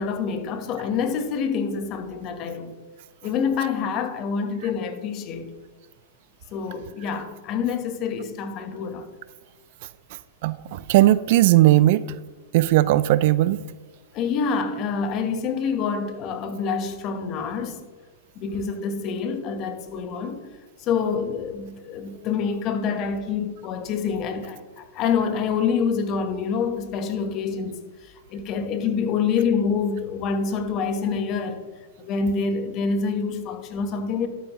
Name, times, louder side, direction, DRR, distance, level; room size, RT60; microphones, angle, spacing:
voice 1, 0.0-2.7 3.2-5.5 6.5-9.1 14.1-17.8 18.3-20.4 20.8-31.6 32.0-34.3, left 5 dB, 40° left, 1.1 m, -26 dB
voice 2, 10.4-12.0 12.5-13.6, right 15 dB, 55° right, 0.3 m, -17 dB
12.5 x 7.1 x 3.1 m
hypercardioid pair, 110°, 0 cm